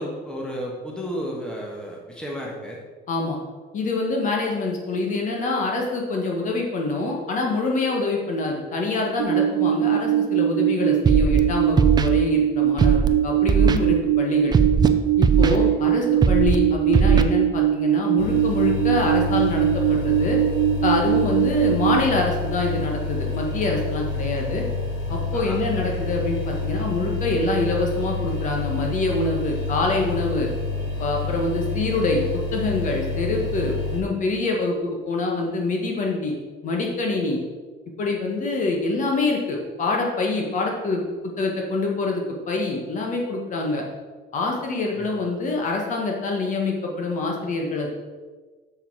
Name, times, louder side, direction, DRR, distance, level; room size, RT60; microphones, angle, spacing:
voice 1, 0.0-2.8 15.4-15.8 25.3-25.6 44.9-45.1, equal, 5° left, -2 dB, 1.5 m, -33 dB
voice 2, 3.1-3.4 3.7-14.5 15.2-20.4 20.8-24.6 25.1-30.5 31.0-36.3 36.6-37.4 38.0-43.8 44.3-47.9, left 3 dB, 40° left, 0 dB, 1.6 m, -25 dB
sound 1, 9.2-22.1, right 12 dB, 80° right, 0.5 m, -21 dB
Scratching (performance technique), 11.0-11.4 11.8-12.1 12.8-13.1 13.5-13.8 14.5-14.9 15.2-15.6 16.2-16.5 16.9-17.2, right 6 dB, 20° right, 0.5 m, -18 dB
sound 2, 18.2-34.0, left 3 dB, 85° left, 2.2 m, -28 dB
6.9 x 6.8 x 4.8 m, 1.4 s
cardioid pair, 135°, 19 cm